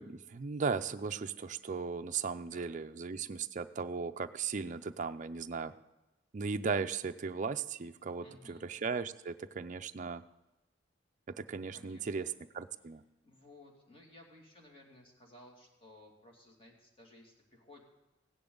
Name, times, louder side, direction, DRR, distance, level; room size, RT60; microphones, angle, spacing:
voice 1, 0.0-5.7 6.3-10.2 11.3-13.0, right 5 dB, 40° right, 8 dB, 0.5 m, -37 dB
voice 2, 2.3-2.7 8.2-8.7 11.7-12.3 13.2-17.8, left 1 dB, 30° left, 0 dB, 2.5 m, -57 dB
16.0 x 10.5 x 3.9 m, 1.1 s
head